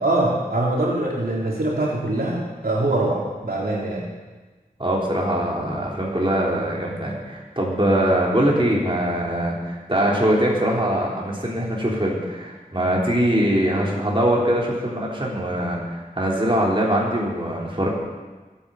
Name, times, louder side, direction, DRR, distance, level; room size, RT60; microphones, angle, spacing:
voice 1, 0.0-4.1, right 2 dB, 80° right, -5 dB, 3.5 m, -23 dB
voice 2, 4.8-17.9, right 1 dB, 35° right, -3 dB, 3.6 m, -22 dB
21.5 x 9.0 x 5.7 m, 1.3 s
wide cardioid pair, 55°, 15 cm